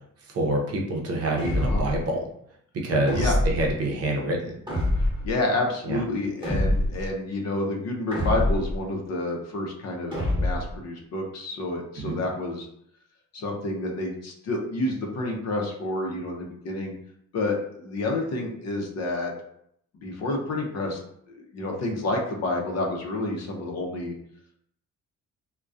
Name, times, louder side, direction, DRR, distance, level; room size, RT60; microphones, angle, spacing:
voice 1, 0.3-2.2 2.8-4.6 5.9-6.0 12.0-12.2, right 1 dB, 55° right, 0 dB, 0.6 m, -26 dB
sound 1, 1.4-2.0 3.1-3.7 4.7-5.3 6.4-7.1 8.1-8.8 10.1-10.7, left 1 dB, 15° right, 1.0 m, -25 dB
voice 2, 5.0-12.7 13.3-16.9 17.3-19.3 19.9-21.0 21.3-24.1, left 2 dB, 60° left, 1 dB, 0.6 m, -29 dB
2.2 x 2.2 x 2.5 m, 0.70 s
cardioid pair, 90°, 30 cm